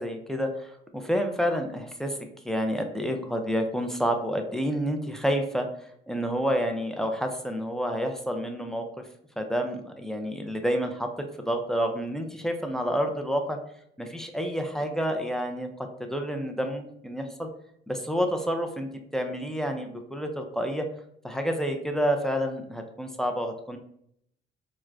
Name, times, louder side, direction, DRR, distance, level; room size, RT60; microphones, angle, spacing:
voice 1, 0.0-2.2 2.4-5.7 6.1-8.9 9.4-11.1 11.4-13.6 14.0-15.7 16.0-17.5 17.9-20.9 21.2-23.8, equal, ahead, 4 dB, 0.4 m, -29 dB
4.5 x 2.1 x 2.4 m, 0.71 s
cardioid pair, 90°, 20 cm